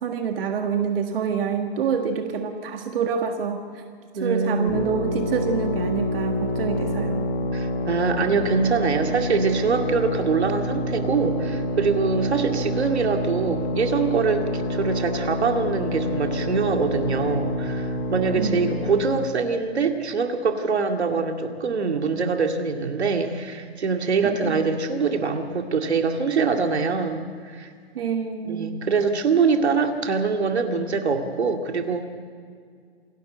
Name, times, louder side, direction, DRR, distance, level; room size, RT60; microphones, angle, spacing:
voice 1, 0.0-3.8 4.2-7.3 18.4-18.6 24.2-24.7 28.0-28.8, right 6 dB, 60° right, 4 dB, 1.7 m, -27 dB
voice 2, 4.1-4.8 7.5-27.7 28.5-32.1, right 4 dB, 85° right, 4 dB, 2.4 m, -24 dB
sound 1, 4.7-19.2, left 1 dB, 25° left, 2.7 m, -27 dB
27.5 x 12.0 x 8.0 m, 2.1 s
hypercardioid pair, 145°, 32 cm